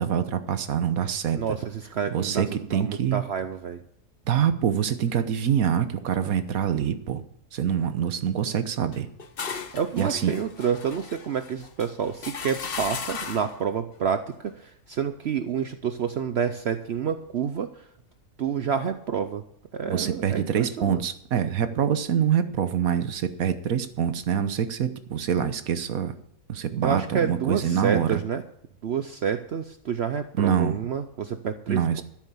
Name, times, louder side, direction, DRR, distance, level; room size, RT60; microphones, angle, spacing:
voice 1, 0.0-1.4 2.1-3.2 4.3-7.2 7.5-9.1 10.0-10.3 19.9-26.1 26.5-28.2 30.4-30.8 31.7-32.0, right 8 dB, 75° right, 11 dB, 1.4 m, -25 dB
voice 2, 1.4-2.5 2.7-3.8 9.7-17.9 18.4-19.4 19.7-21.0 26.8-28.4 28.8-32.0, right 7 dB, 55° right, 10 dB, 0.8 m, -29 dB
sound 1, 8.9-13.6, left 5 dB, 45° left, 1.1 m, -37 dB
13.0 x 7.3 x 7.0 m, 0.72 s
omnidirectional pair, 1.5 m